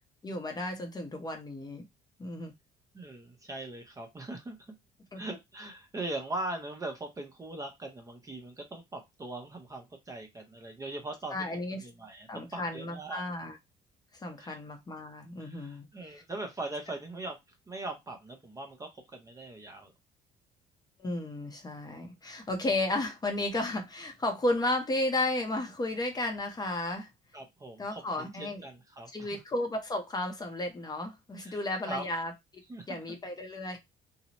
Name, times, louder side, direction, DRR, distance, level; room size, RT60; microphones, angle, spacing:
voice 1, 0.2-1.9 2.2-2.5 5.1-5.2 11.3-11.9 12.3-13.6 14.2-16.2 21.0-27.1 27.8-28.6 29.1-32.3 32.9-33.8, left 2 dB, 25° left, 0.7 m, -33 dB
voice 2, 2.9-4.6 5.2-11.4 11.8-13.2 14.4-14.6 15.4-17.4 17.7-19.9 27.3-29.4 31.4-31.6 31.9-32.1 32.7-33.0, right 2 dB, 20° right, 0.6 m, -40 dB
2.7 x 2.0 x 2.8 m
cardioid pair, 110°, 17 cm